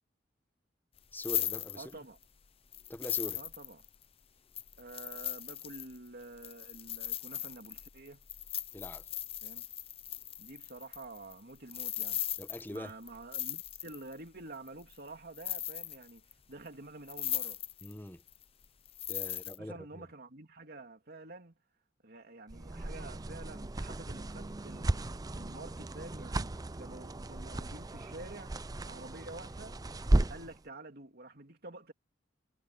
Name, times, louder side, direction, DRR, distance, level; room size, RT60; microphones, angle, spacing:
sound 1, 1.0-2.2 2.7-4.0 4.6-14.1 14.7-15.1 15.4-16.3 16.7-16.8 17.1-18.0 18.3-19.6, left 11 dB, 30° left, 0.6 m, -38 dB
voice 1, 1.1-1.9 2.9-3.4 8.7-9.1 12.4-12.9 17.8-18.2 19.1-20.1, left 1 dB, 10° left, 1.0 m, -43 dB
voice 2, 1.7-2.2 3.3-3.8 4.8-8.3 9.4-9.7 10.4-12.2 12.7-17.6 19.6-21.6 22.0-25.1 25.3-28.6 28.8-29.8 30.3-31.9, right 2 dB, 55° right, 3.1 m, -49 dB
sound 2, 22.5-30.6, right 1 dB, 20° right, 0.5 m, -35 dB
head